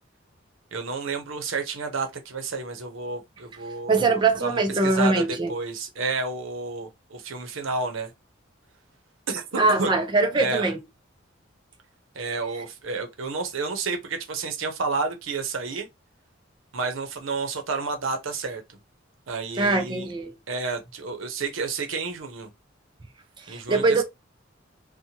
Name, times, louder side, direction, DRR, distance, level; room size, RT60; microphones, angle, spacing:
voice 1, 0.7-8.1 9.3-9.9 10.4-10.6 12.1-15.9 16.7-18.6 19.3-20.1 20.5-22.5 23.5-24.0, right 4 dB, 85° right, 0.7 m, -30 dB
voice 2, 3.9-5.5 9.6-10.8 12.6-12.7 19.6-20.4 23.4-24.0, right 3 dB, 25° right, 0.4 m, -22 dB
2.8 x 2.1 x 2.7 m
head